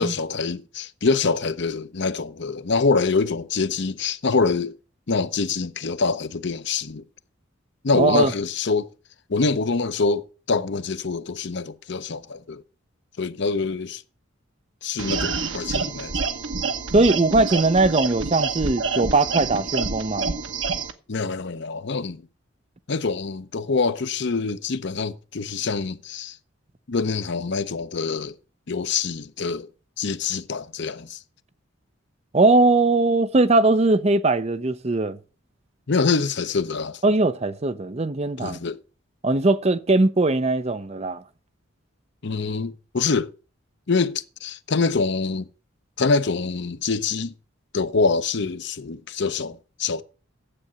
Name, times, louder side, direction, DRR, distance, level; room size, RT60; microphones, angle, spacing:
voice 1, 0.0-4.8 5.1-7.0 7.8-8.9 9.3-12.6 13.2-14.0 14.8-16.1 21.1-22.2 22.9-26.4 26.9-28.4 28.7-29.7 30.0-31.2 35.9-37.0 38.4-38.8 42.2-43.3 43.9-45.5 46.0-47.3 47.7-50.0, left 4 dB, 60° left, 0.7 m, -25 dB
voice 2, 7.9-8.3 16.9-20.3 32.3-35.2 37.0-38.6 39.2-41.2, right 2 dB, 30° right, 0.6 m, -20 dB
sound 1, 15.0-20.9, right 4 dB, 70° right, 1.2 m, -27 dB
9.9 x 7.9 x 6.3 m
head